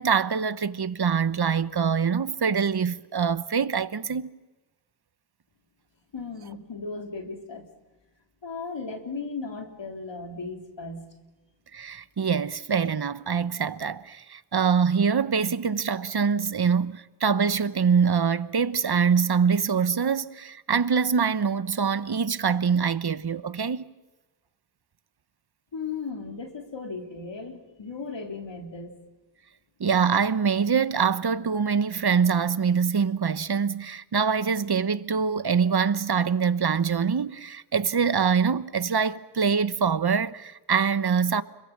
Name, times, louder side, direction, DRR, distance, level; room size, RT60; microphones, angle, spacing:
voice 1, 0.0-4.3 11.7-23.8 29.8-41.4, right 6 dB, 60° right, 1.0 m, -24 dB
voice 2, 6.1-7.7 8.4-11.1 25.7-28.9, left 4 dB, 80° left, 3.7 m, -36 dB
29.5 x 22.0 x 7.4 m
wide cardioid pair, 60°, 43 cm